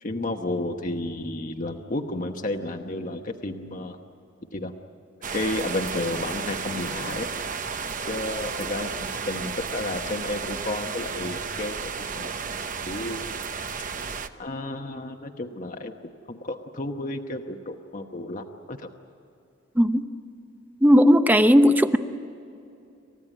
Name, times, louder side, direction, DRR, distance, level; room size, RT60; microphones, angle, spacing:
voice 1, 0.0-4.0 4.5-4.7 5.3-7.3 8.1-12.3 12.9-13.3 14.4-15.9 16.3-18.9, left 2 dB, 45° left, 3 dB, 1.1 m, -32 dB
sound 1, 5.2-14.3, right 5 dB, 45° right, 0.9 m, -33 dB
voice 2, 20.8-22.0, equal, 10° right, 9 dB, 0.8 m, -16 dB
28.5 x 15.0 x 10.0 m, 2.7 s
head